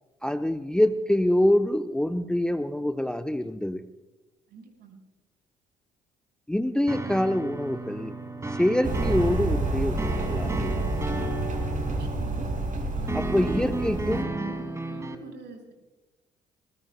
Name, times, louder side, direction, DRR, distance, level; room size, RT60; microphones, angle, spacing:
voice 1, 0.2-3.8 6.5-8.1 8.5-10.8 13.1-14.3, left 1 dB, 5° left, 9 dB, 0.8 m, -25 dB
voice 2, 4.5-5.0 11.9-12.5 12.9-13.5 13.9-15.7, right 4 dB, 60° right, 3 dB, 5.3 m, -44 dB
sound 1, 6.9-15.2, right 1 dB, 15° right, 2.3 m, -34 dB
sound 2, 8.8-14.2, right 2 dB, 40° right, 5.6 m, -29 dB
26.0 x 21.5 x 2.3 m, 1.1 s
figure-of-eight pair, 50°, 20 cm